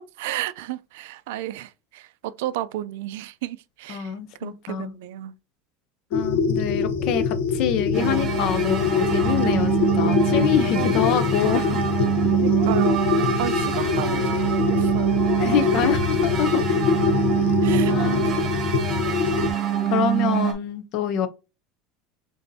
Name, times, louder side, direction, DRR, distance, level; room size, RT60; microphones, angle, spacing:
voice 1, 0.2-4.1 4.4-5.3 10.7-10.9 11.4-11.9 12.3-15.4 17.6-17.9 18.5-18.6, right 14 dB, 75° right, 0.4 m, -33 dB
voice 2, 3.9-4.9 6.1-11.7 13.8-14.1 15.4-16.6 17.9-18.3 19.9-21.3, left 8 dB, 45° left, 0.5 m, -26 dB
sound 1, 6.1-19.5, left 5 dB, 85° left, 0.7 m, -23 dB
sound 2, 7.9-20.5, right 11 dB, 25° right, 1.0 m, -25 dB
6.7 x 2.6 x 2.7 m
cardioid pair, 170°, 0 cm